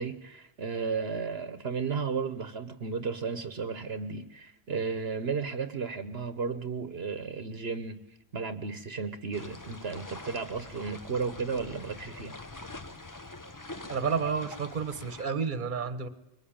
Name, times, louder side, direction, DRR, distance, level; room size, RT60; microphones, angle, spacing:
voice 1, 0.0-8.0 8.3-12.4, right 5 dB, 65° right, 1.4 m, -34 dB
sound 1, 9.3-15.2, left 2 dB, 20° left, 1.0 m, -44 dB
voice 2, 13.9-16.1, right 6 dB, 50° right, 1.5 m, -30 dB
25.5 x 22.5 x 8.9 m
omnidirectional pair, 1.1 m